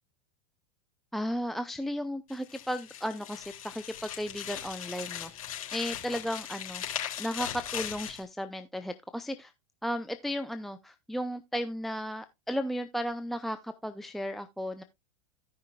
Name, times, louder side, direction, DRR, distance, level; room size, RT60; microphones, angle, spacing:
voice 1, 1.1-5.3 5.7-6.8 7.2-9.5 9.8-14.8, equal, ahead, 0.5 m, -34 dB
sound 1, 2.3-8.2, left 10 dB, 85° left, 3.6 m, -39 dB
16.5 x 5.7 x 2.3 m
hypercardioid pair, 110°, 18 cm